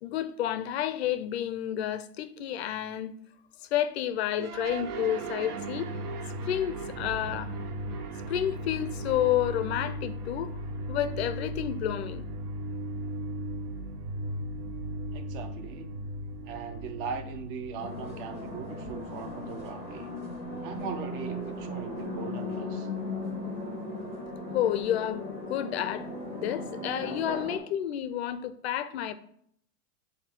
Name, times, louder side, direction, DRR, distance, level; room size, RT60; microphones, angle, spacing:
voice 1, 0.0-3.1 3.6-5.9 6.4-7.5 8.3-10.6 10.9-12.3 24.5-29.1, left 11 dB, 45° left, 0.4 m, -30 dB
sound 1, 4.4-22.7, right 1 dB, 70° right, 0.9 m, -37 dB
voice 2, 15.1-15.9 16.4-20.1 20.6-22.9, right 6 dB, 35° right, 0.6 m, -39 dB
sound 2, 17.8-27.6, left 2 dB, 15° right, 1.2 m, -37 dB
7.5 x 2.7 x 5.9 m
supercardioid pair, 160°, 48 cm